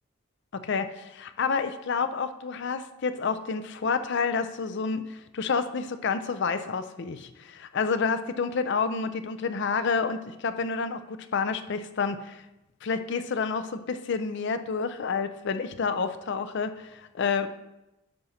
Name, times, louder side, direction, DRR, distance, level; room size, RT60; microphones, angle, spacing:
voice 1, 0.5-12.4 12.8-17.5, left 5 dB, 50° left, 11 dB, 0.4 m, -29 dB
10.5 x 6.8 x 2.8 m, 0.95 s
head